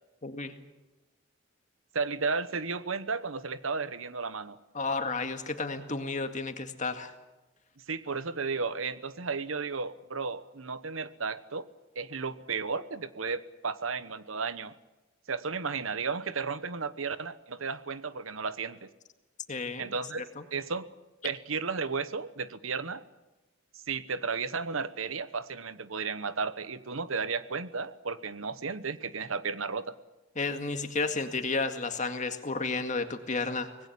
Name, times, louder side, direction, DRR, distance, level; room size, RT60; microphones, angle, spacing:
voice 1, 0.2-0.5 4.7-7.1 19.5-19.9 20.4-20.5 30.4-33.7, left 3 dB, 40° left, 7 dB, 2.0 m, -32 dB
voice 2, 1.9-4.6 7.9-11.7 12.0-14.7 15.3-18.9 19.8-20.2 20.5-20.9 21.2-23.0 23.7-29.9, right 4 dB, 90° right, 14 dB, 1.1 m, -33 dB
25.5 x 19.5 x 8.6 m, 1.1 s
head